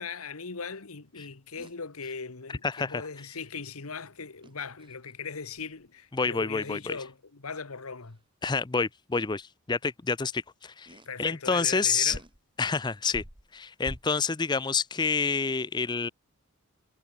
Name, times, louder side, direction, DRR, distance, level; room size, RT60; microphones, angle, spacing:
voice 1, 0.0-8.2 11.0-12.2, left 5 dB, 85° left, 1.4 m, -39 dB
sound 1, 1.6-1.8 4.4-5.1 5.6-5.8 6.6-6.9 8.1-8.2 9.1-9.4 10.9-11.1 11.8-11.9 12.1-12.4 13.1-14.4, equal, 25° right, 3.2 m, -46 dB
voice 2, 2.6-3.1 6.1-7.0 8.4-12.2 12.6-13.2 13.5-16.1, left 5 dB, 20° left, 0.5 m, -28 dB
head